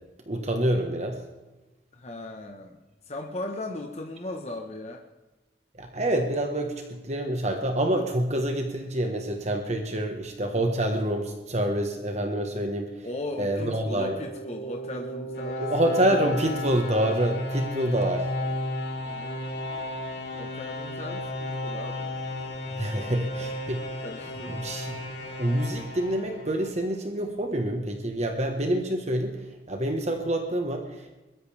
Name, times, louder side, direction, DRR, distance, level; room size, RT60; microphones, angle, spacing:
voice 1, 0.3-1.2 5.8-12.9 13.4-14.1 15.6-18.3 22.8-23.8 24.6-25.0 25.4-29.4 29.7-31.1, right 1 dB, 40° right, 4 dB, 1.4 m, -27 dB
voice 2, 1.9-2.8 3.0-5.0 13.0-15.7 16.3-16.4 19.0-19.4 20.4-22.1 23.0-23.3 24.0-24.8 25.2-25.3, left 1 dB, 40° left, 2 dB, 1.3 m, -38 dB
sound 1, 13.9-26.9, left 1 dB, 65° left, 3.3 m, -34 dB
21.5 x 13.5 x 3.5 m, 1.1 s
head